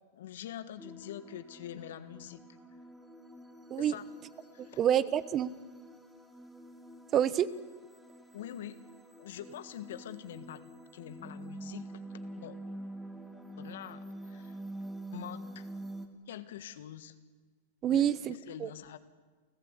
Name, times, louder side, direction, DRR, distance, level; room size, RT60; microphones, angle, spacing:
voice 1, 0.1-2.4 3.8-4.0 4.5-4.8 8.3-8.8 9.2-10.6 10.9-11.9 12.4-12.6 13.6-14.6 15.1-15.7 16.3-17.1 17.9-19.0, left 11 dB, 70° left, 12 dB, 1.6 m, -45 dB
sound 1, 0.8-16.1, right 1 dB, 5° right, 2.8 m, -47 dB
voice 2, 4.6-5.5 7.1-7.5 17.8-18.7, right 10 dB, 30° right, 17 dB, 0.9 m, -28 dB
29.5 x 14.5 x 8.3 m, 1.4 s
hypercardioid pair, 125°, 0 cm